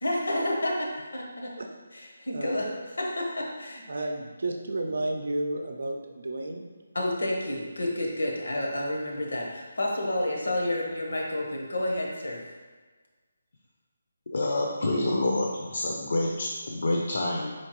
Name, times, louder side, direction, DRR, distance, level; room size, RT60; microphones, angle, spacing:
voice 1, 0.0-1.5 1.9-2.7 3.0-4.0 6.9-12.4, left 1 dB, 85° left, -1 dB, 0.9 m, -30 dB
voice 2, 3.9-6.7, right 2 dB, 70° right, 3 dB, 0.5 m, -32 dB
voice 3, 14.3-17.5, left 2 dB, 60° left, -1 dB, 0.5 m, -27 dB
4.4 x 2.8 x 3.0 m, 1.4 s
hypercardioid pair, 170°, 0 cm